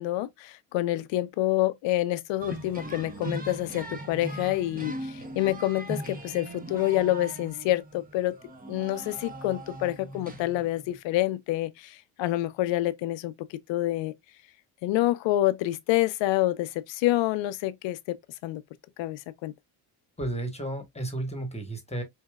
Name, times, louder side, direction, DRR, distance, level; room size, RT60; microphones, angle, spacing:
voice 1, 0.0-8.3 8.7-14.1 14.8-18.2 18.4-18.6 19.0-19.5, left 15 dB, 75° left, 0.6 m, -27 dB
sound 1, 2.4-11.0, right 2 dB, 20° right, 0.9 m, -39 dB
voice 2, 20.2-22.0, right 1 dB, 15° left, 1.2 m, -33 dB
4.6 x 2.8 x 2.3 m
supercardioid pair, 85°, 45 cm